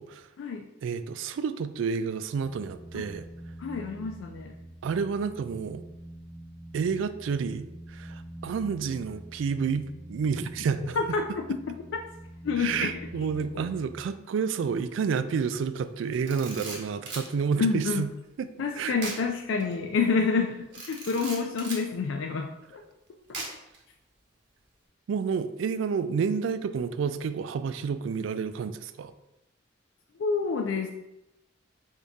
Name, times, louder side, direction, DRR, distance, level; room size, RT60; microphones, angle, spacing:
voice 1, 0.8-3.3 4.8-5.8 6.7-11.0 12.6-18.1 18.4-18.5 18.8-19.0 25.1-29.1, right 6 dB, 80° right, 12 dB, 0.3 m, -30 dB
sound 1, 2.3-14.0, right 1 dB, 10° left, 0.9 m, -45 dB
voice 2, 3.6-4.5 11.0-12.0 12.4-12.9 13.5-13.7 17.6-18.0 18.6-22.8 30.2-30.9, left 4 dB, 75° left, 3 dB, 0.3 m, -28 dB
Camera, 16.1-17.3 19.0-19.2 19.6-19.7 20.7-21.8 23.3-23.8, right 3 dB, 60° right, 1.1 m, -38 dB
3.6 x 2.7 x 4.6 m, 0.90 s
head